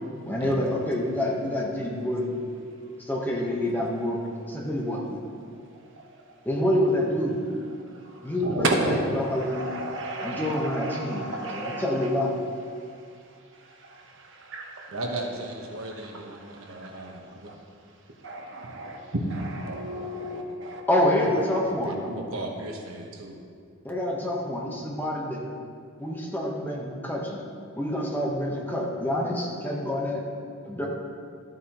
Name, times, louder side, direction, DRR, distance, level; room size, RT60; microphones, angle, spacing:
voice 1, 0.3-2.3 3.0-4.2 4.5-5.2 6.4-7.6 8.2-9.7 10.2-12.3 20.9-21.9 23.8-25.4 26.0-27.4 27.8-30.2 30.6-30.9, left 1 dB, 10° left, -2 dB, 1.1 m, -27 dB
voice 2, 8.1-8.9 9.3-12.1 13.8-14.1 14.4-14.9 16.4-17.1 18.2-20.8, right 2 dB, 60° right, 1 dB, 1.1 m, -32 dB
voice 3, 14.9-17.5 19.7-19.8 21.3-21.4 21.8-23.4, right 2 dB, 80° right, 1 dB, 1.2 m, -36 dB
13.0 x 7.9 x 3.0 m, 2.3 s
head